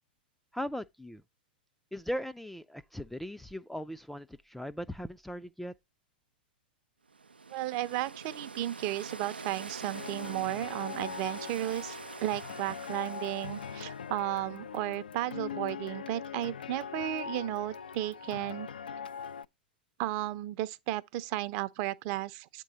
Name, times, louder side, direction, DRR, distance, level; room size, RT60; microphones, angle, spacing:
voice 1, 0.5-1.2 1.9-5.7, equal, 5° left, 0.4 m, -38 dB
sound 1, 7.1-14.2, right 4 dB, 85° right, 0.4 m, -45 dB
voice 2, 7.5-18.7 20.0-22.6, right 15 dB, 45° right, 0.6 m, -34 dB
sound 2, 9.9-19.4, left 7 dB, 75° left, 0.4 m, -41 dB
8.8 x 3.8 x 4.1 m
figure-of-eight pair, 100°, 5 cm